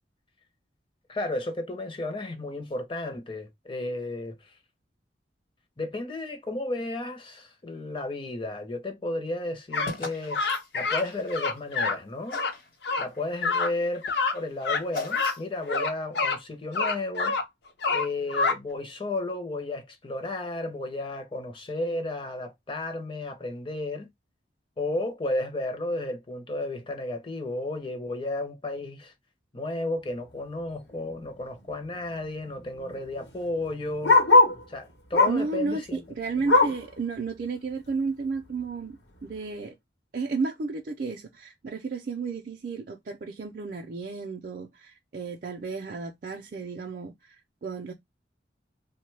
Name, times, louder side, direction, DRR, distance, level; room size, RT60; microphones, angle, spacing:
voice 1, 1.1-4.6 5.8-10.4 10.7-12.4 13.0-14.1 14.3-17.4 17.9-24.1 24.8-29.1 29.5-34.2 34.7-36.0, left 2 dB, 30° left, 0.6 m, -33 dB
sound 1, 9.7-9.9 10.3-11.0 11.3-12.0 12.3-12.5 12.8-13.0 13.4-13.7 14.0-14.4 14.6-14.8 15.1-15.4 15.7-16.4 16.7-17.4 17.8-18.6, left 4 dB, 70° left, 0.6 m, -26 dB
sound 2, 9.8-11.9 12.3-12.7 13.1-15.7, left 3 dB, 50° left, 1.0 m, -40 dB
Bark, 30.9-31.2 31.5-31.6 31.8-34.6 35.1-35.5 35.9-36.9 37.4-37.5 37.9-38.0 38.6-38.7, left 2 dB, 90° left, 1.0 m, -22 dB
voice 2, 35.3-39.7 40.1-47.9, right 4 dB, 50° right, 0.4 m, -33 dB
3.0 x 2.1 x 3.2 m
head